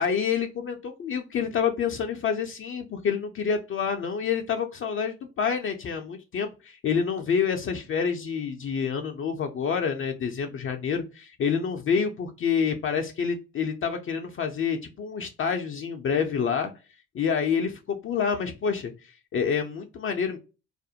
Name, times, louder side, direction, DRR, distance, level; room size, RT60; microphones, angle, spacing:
voice 1, 0.0-16.7 17.1-18.9 19.3-20.4, left 6 dB, 40° left, 4 dB, 0.5 m, -28 dB
2.4 x 2.1 x 2.7 m, 0.31 s
hypercardioid pair, 55°, 34 cm